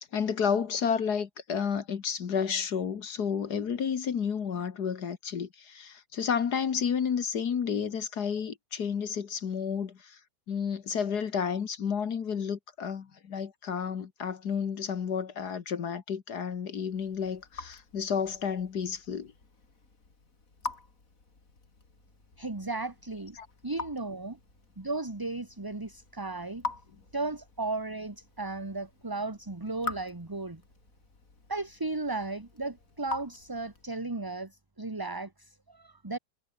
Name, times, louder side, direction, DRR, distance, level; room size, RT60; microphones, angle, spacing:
voice 1, 0.0-10.2 10.5-19.3 23.4-23.5, left 7 dB, 60° left, 2.0 m, -31 dB
Raindrop / Drip, 16.8-34.0, left 3 dB, 45° left, 3.8 m, -45 dB
voice 2, 22.4-23.4 23.6-24.4 24.8-26.6 27.1-30.6 31.5-36.2, right 3 dB, 15° right, 1.3 m, -35 dB
omnidirectional pair, 2.0 m